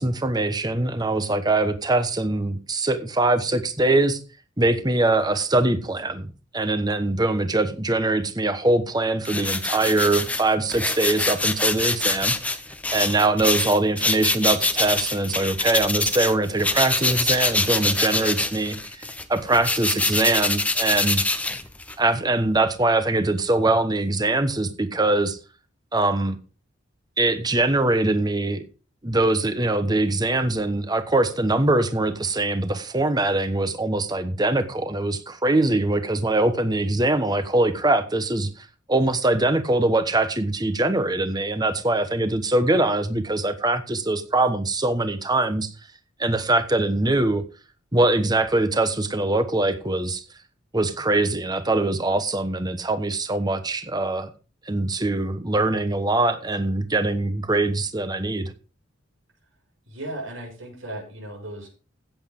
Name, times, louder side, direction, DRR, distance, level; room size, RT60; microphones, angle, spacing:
voice 1, 0.0-4.2 4.6-6.3 6.5-12.3 12.9-19.0 19.3-21.2 22.0-25.4 25.9-26.4 27.2-28.6 29.0-45.7 46.2-47.4 47.9-50.2 50.7-54.3 54.7-58.5, right 2 dB, 20° right, 1.1 m, -22 dB
sound 1, 9.2-16.3 16.6-22.1, left 2 dB, 5° left, 0.8 m, -25 dB
voice 2, 59.9-61.7, right 1 dB, 90° right, 6.4 m, -36 dB
16.0 x 8.0 x 3.8 m
head